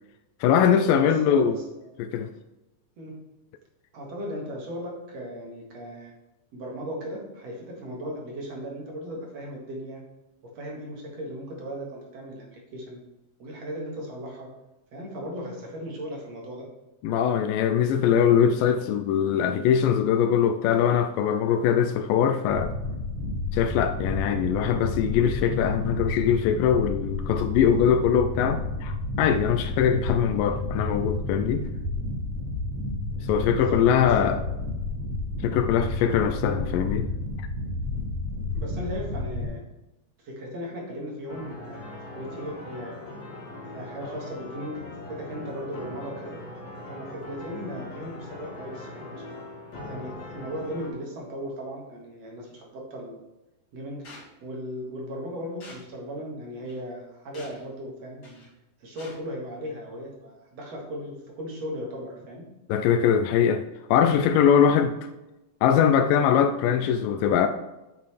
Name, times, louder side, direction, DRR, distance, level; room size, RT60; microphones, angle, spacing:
voice 1, 0.4-1.6 2.0-2.3 17.0-22.7 23.5-31.7 33.3-34.4 35.4-37.1 62.7-63.6 63.9-65.0 65.6-67.5, left 8 dB, 85° left, 7 dB, 2.2 m, -22 dB
voice 2, 1.0-1.6 3.0-3.2 3.9-6.1 6.5-10.0 10.4-13.0 13.4-14.5 14.9-16.6 33.5-34.4 35.7-35.9 38.5-39.6 40.2-42.9 43.6-46.3 46.9-49.4 49.8-53.2 53.7-54.0 54.4-58.4 58.8-62.4, equal, 55° right, -1 dB, 2.8 m, -37 dB
sound 1, 22.5-39.5, left 2 dB, 80° right, 4.6 m, -31 dB
sound 2, 41.3-50.9, left 2 dB, 55° left, 2.9 m, -41 dB
sound 3, 54.0-54.3 55.6-55.9 56.6-56.8 57.3-57.7 58.2-58.5 59.0-59.2, left 2 dB, 35° left, 2.1 m, -46 dB
9.0 x 8.2 x 3.3 m, 1.0 s
omnidirectional pair, 3.8 m